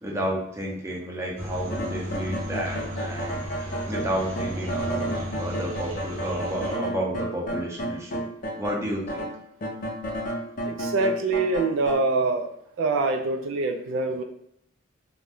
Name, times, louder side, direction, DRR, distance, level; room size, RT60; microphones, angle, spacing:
voice 1, 0.0-8.3 8.6-9.3, right 1 dB, 15° right, -3 dB, 0.6 m, -31 dB
sound 1, 1.4-6.7, equal, 85° right, 0.7 m, -34 dB
sound 2, 1.7-8.8 9.1-11.9, equal, 45° left, 0.5 m, -32 dB
voice 2, 10.7-12.5 12.8-14.2, right 3 dB, 70° right, 5 dB, 0.3 m, -24 dB
2.6 x 2.1 x 3.4 m, 0.74 s
head